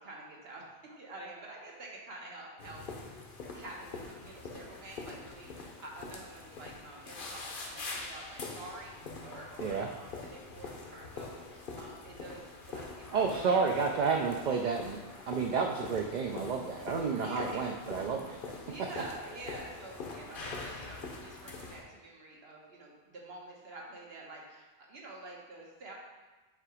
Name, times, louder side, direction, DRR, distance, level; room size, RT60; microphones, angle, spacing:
voice 1, 0.0-2.8 3.1-3.3 3.5-8.9 9.2-12.4 12.7-13.9 17.1-17.6 18.7-25.9, right 2 dB, 70° right, -2 dB, 1.3 m, -48 dB
sound 1, 2.6-21.8, left 3 dB, 60° left, 0.9 m, -44 dB
voice 2, 13.1-15.0 15.3-18.4, right 5 dB, 55° right, 2 dB, 0.5 m, -30 dB
7.5 x 2.9 x 4.8 m, 1.2 s
omnidirectional pair, 1.1 m